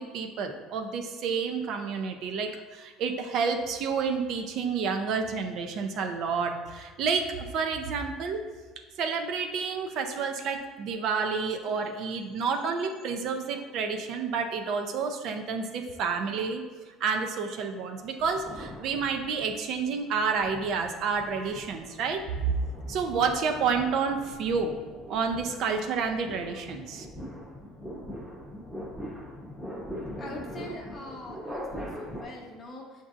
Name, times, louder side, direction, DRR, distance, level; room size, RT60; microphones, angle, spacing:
voice 1, 0.0-8.4 9.0-16.6 17.0-22.5 22.9-24.7 25.1-27.1, right 5 dB, 55° right, 5 dB, 0.4 m, -29 dB
sound 1, 18.2-19.6 20.2-32.2, equal, 5° right, 0.8 m, -42 dB
voice 2, 30.2-33.0, left 1 dB, 30° left, 0 dB, 0.8 m, -43 dB
7.1 x 2.6 x 2.4 m, 1.4 s
cardioid pair, 135°, 0 cm